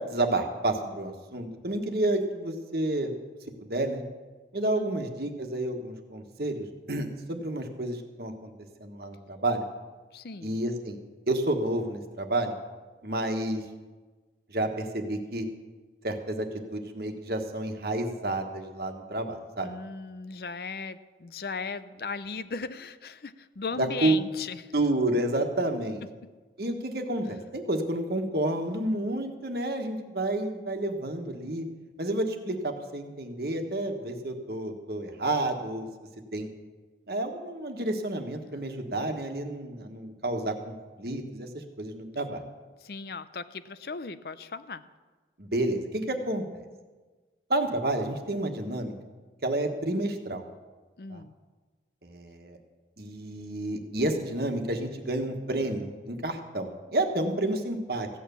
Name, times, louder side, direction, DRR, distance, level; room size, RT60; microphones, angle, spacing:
voice 1, 0.0-3.1 3.6-4.0 4.5-8.5 8.8-9.6 10.4-11.0 11.3-12.5 13.0-13.6 14.5-15.4 16.0-19.7 23.8-24.2 24.7-26.0 26.6-31.6 32.0-35.9 36.3-36.5 37.1-42.4 45.4-46.4 47.5-48.9 49.4-50.4 51.1-51.2 52.0-52.6 53.0-58.1, right 1 dB, 60° right, 5 dB, 1.4 m, -30 dB
voice 2, 4.7-5.1 10.1-10.6 19.6-24.7 42.8-44.8 51.0-51.4, left 4 dB, 60° left, 13 dB, 0.6 m, -37 dB
15.5 x 9.2 x 6.9 m, 1.3 s
head